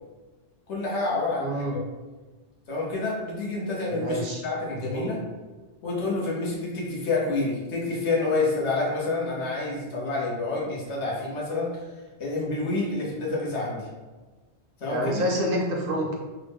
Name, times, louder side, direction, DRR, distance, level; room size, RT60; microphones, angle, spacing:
voice 1, 0.7-1.8 2.7-5.2 5.8-11.7 12.2-13.9 14.8-15.3, left 3 dB, 85° left, -5 dB, 1.2 m, -28 dB
voice 2, 1.4-1.8 3.9-4.4 4.7-5.1 14.9-16.2, equal, 60° right, 0 dB, 0.7 m, -28 dB
3.5 x 2.1 x 3.4 m, 1.3 s
omnidirectional pair, 1.2 m